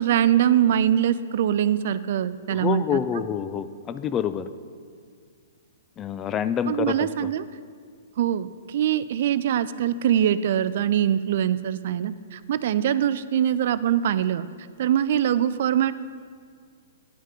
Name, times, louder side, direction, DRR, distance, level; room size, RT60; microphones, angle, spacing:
voice 1, 0.0-3.0 6.7-7.4 8.2-14.5 14.8-15.9, right 10 dB, 60° right, 15 dB, 0.3 m, -23 dB
voice 2, 2.5-4.5 6.0-7.0, left 8 dB, 25° left, 12 dB, 0.3 m, -27 dB
9.7 x 5.6 x 5.0 m, 2.1 s
hypercardioid pair, 125°, 0 cm